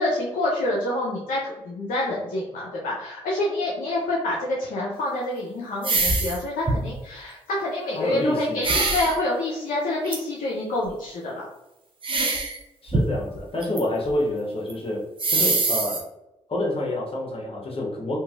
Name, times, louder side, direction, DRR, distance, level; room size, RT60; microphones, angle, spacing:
voice 1, 0.0-11.4, left 1 dB, 70° left, -4 dB, 0.6 m, -27 dB
sound 1, 5.8-6.4 6.7-7.0 8.6-9.2 10.1-10.2 12.0-12.6 12.9-13.8 14.1-14.2 14.7-14.8 15.2-16.0, right 3 dB, 35° right, 0.7 m, -23 dB
voice 2, 7.9-8.6 12.8-15.0 15.3-16.0 16.5-18.2, left 1 dB, 40° left, -2 dB, 1.2 m, -27 dB
2.9 x 2.5 x 2.4 m, 0.92 s
hypercardioid pair, 40°, 14 cm